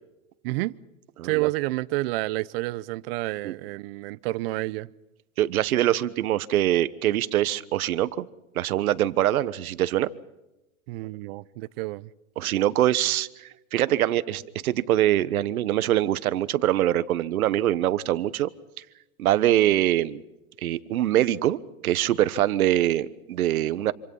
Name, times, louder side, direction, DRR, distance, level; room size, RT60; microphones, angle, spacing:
voice 1, 0.4-0.8 1.2-4.9 10.9-12.1, right 20 dB, 45° right, 0.8 m, -29 dB
voice 2, 1.2-1.5 3.4-3.5 5.4-8.3 8.5-10.1 12.4-18.5 19.2-20.2 20.6-23.9, right 13 dB, 80° right, 1.3 m, -24 dB
27.0 x 26.0 x 5.5 m
supercardioid pair, 150°, 42 cm